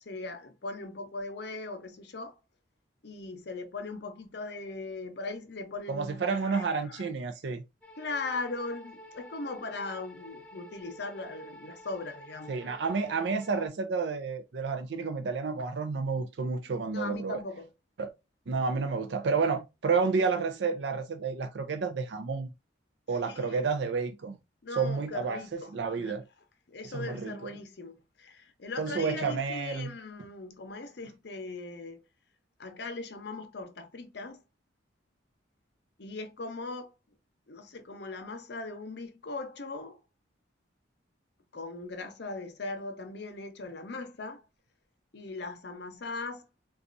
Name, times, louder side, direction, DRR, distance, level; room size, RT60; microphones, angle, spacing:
voice 1, 0.1-2.3 3.0-7.0 8.0-12.7 16.9-17.7 23.1-23.6 24.6-26.2 26.7-32.0 32.6-34.4 36.0-36.9 37.5-40.0 41.5-44.4 45.1-46.5, left 3 dB, 60° left, 0.7 m, -39 dB
voice 2, 5.9-7.6 12.5-17.4 18.0-18.1 18.5-22.5 23.1-24.4 24.8-26.2 26.8-27.6 28.8-29.9, right 4 dB, 70° right, 0.4 m, -30 dB
sound 1, 7.8-13.7, equal, 5° left, 0.6 m, -50 dB
4.0 x 2.4 x 2.4 m
head